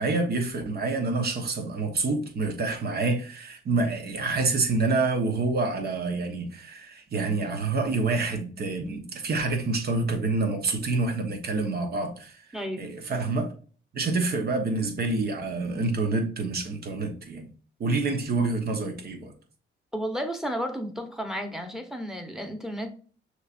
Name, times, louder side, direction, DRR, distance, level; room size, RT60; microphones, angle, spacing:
voice 1, 0.0-12.5 12.8-13.5 13.9-17.5 17.8-19.3, right 3 dB, 50° right, 1.2 m, -27 dB
voice 2, 12.5-12.9 19.9-23.0, equal, ahead, 1.0 m, -32 dB
6.3 x 3.2 x 2.6 m
cardioid pair, 90°, 20 cm